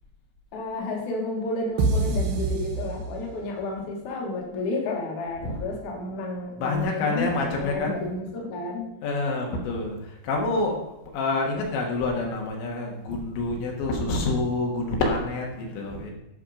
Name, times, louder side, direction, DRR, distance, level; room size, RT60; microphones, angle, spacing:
voice 1, 0.5-8.9, left 2 dB, 55° left, -1 dB, 2.3 m, -31 dB
sound 1, 1.8-3.6, right 3 dB, 85° right, 2.0 m, -26 dB
voice 2, 6.6-8.0 9.0-10.0 10.2-10.8 11.1-16.1, left 2 dB, 70° left, 0 dB, 3.7 m, -27 dB
11.5 x 5.7 x 5.1 m, 0.91 s
omnidirectional pair, 5.7 m